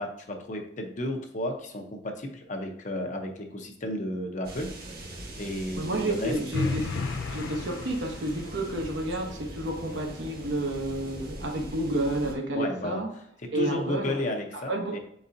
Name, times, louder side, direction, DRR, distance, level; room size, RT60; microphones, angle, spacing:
voice 1, 0.0-4.7 5.4-6.8 12.5-13.0 13.5-15.0, left 1 dB, 45° left, 3 dB, 0.7 m, -33 dB
sound 1, 4.4-12.3, right 1 dB, 55° right, 1.2 m, -41 dB
voice 2, 5.7-13.1 13.5-14.2 14.5-15.0, right 1 dB, 85° right, 2 dB, 1.0 m, -30 dB
sound 2, 6.5-8.6, left 4 dB, 85° left, 0.4 m, -33 dB
4.7 x 4.0 x 2.6 m, 0.72 s
head